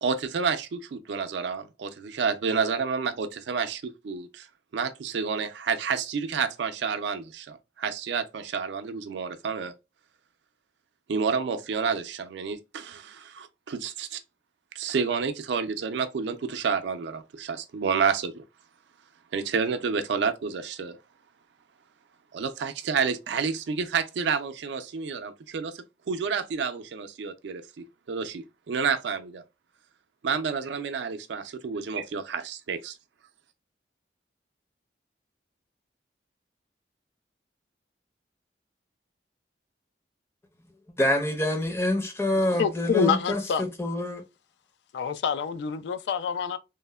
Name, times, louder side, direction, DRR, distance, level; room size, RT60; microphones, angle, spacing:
voice 1, 0.0-4.5 4.7-9.7 11.1-14.2 14.8-18.4 19.3-21.0 22.3-29.4 30.2-32.9, right 5 dB, 85° right, 0.4 m, -29 dB
voice 2, 41.0-43.4 43.8-44.2, left 1 dB, 15° left, 0.5 m, -26 dB
voice 3, 42.4-43.6 44.9-46.6, left 6 dB, 75° left, 0.3 m, -27 dB
3.1 x 2.0 x 2.2 m
head